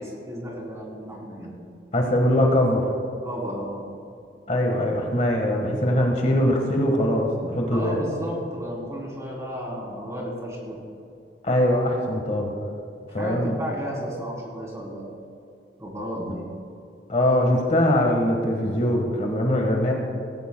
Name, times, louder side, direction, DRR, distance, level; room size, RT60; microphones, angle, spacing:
voice 1, 0.0-1.5 3.2-3.9 7.7-10.8 13.2-15.0 15.8-16.4, equal, 20° right, -3 dB, 3.5 m, -33 dB
voice 2, 1.9-2.8 4.5-8.0 11.4-12.5 13.1-13.5 17.1-19.9, left 1 dB, 40° left, 1 dB, 1.5 m, -22 dB
17.5 x 16.5 x 2.3 m, 2.5 s
head